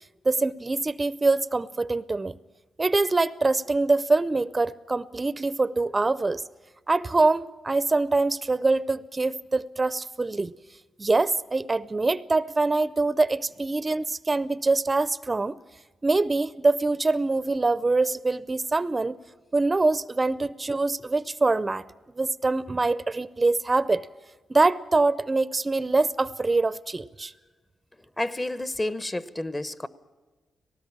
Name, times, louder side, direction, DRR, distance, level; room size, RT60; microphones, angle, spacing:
voice 1, 0.2-2.4 2.8-6.4 6.9-10.5 11.0-15.6 16.0-19.2 19.5-21.8 22.2-24.1 24.5-27.3, right 3 dB, 30° right, 18 dB, 0.5 m, -24 dB
voice 2, 28.2-29.9, left 1 dB, 20° left, 16 dB, 0.9 m, -30 dB
19.0 x 18.0 x 8.7 m, 1.3 s
cardioid pair, 65°, 0 cm